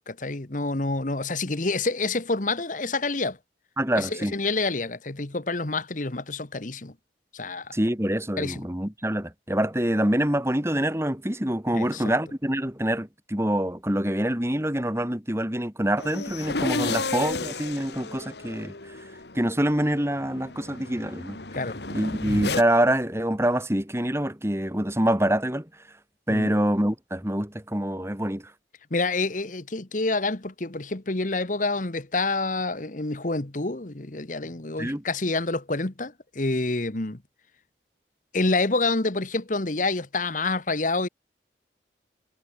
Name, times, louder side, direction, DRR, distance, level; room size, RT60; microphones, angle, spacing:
voice 1, 0.1-3.4 4.0-6.9 7.3-7.7 8.4-8.6 11.7-12.0 16.8-17.0 21.5-21.8 26.3-26.5 28.9-37.2 38.3-41.1, left 3 dB, 45° left, 1.4 m, -28 dB
voice 2, 3.8-4.3 7.7-18.7 19.3-21.4 21.9-25.7 26.3-28.5 34.8-35.0, right 1 dB, 15° right, 2.8 m, -25 dB
sound 1, 16.0-22.6, left 3 dB, 70° left, 2.0 m, -33 dB
head